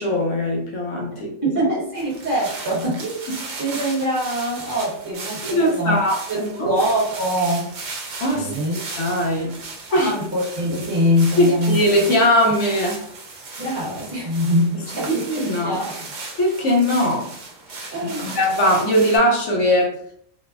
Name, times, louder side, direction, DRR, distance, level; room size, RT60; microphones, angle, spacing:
voice 1, 0.0-1.3 5.4-6.8 8.2-8.5 9.0-9.5 9.9-10.1 11.4-13.1 15.1-15.8 16.4-17.3 17.7-20.1, equal, 75° left, 0 dB, 1.0 m, -20 dB
voice 2, 1.4-3.3 3.6-6.0 6.3-7.7 8.3-8.7 9.9-11.8 13.6-15.2 15.6-16.1 17.9-18.4, equal, 45° right, -5 dB, 1.3 m, -23 dB
sound 1, 1.9-19.2, right 3 dB, 80° right, 1.1 m, -36 dB
4.0 x 2.1 x 2.4 m, 0.65 s
omnidirectional pair, 1.3 m